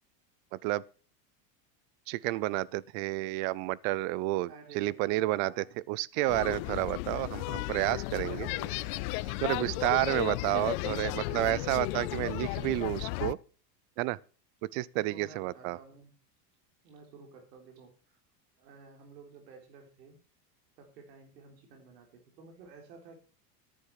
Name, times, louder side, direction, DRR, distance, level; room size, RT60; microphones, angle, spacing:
voice 1, 0.5-0.8 2.1-4.5 4.7-8.5 9.4-13.4 14.0-14.2 14.6-15.8, right 18 dB, 55° right, 0.6 m, -30 dB
voice 2, 4.5-5.9 8.3-12.3 15.0-16.1 16.8-18.2 18.6-20.2 20.8-23.2, right 4 dB, 85° right, 3.9 m, -52 dB
sound 1, 6.3-13.3, left 21 dB, 65° left, 0.7 m, -34 dB
10.5 x 9.7 x 4.8 m
supercardioid pair, 130°, 48 cm